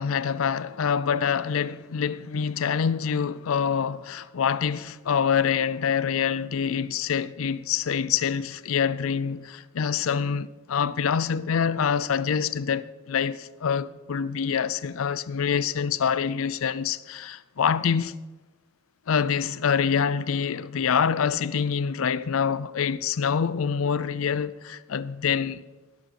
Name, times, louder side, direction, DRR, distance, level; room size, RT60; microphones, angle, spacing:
voice 1, 0.0-18.1 19.1-25.6, left 7 dB, 65° left, 0.5 m, -26 dB
16.5 x 6.2 x 6.5 m
head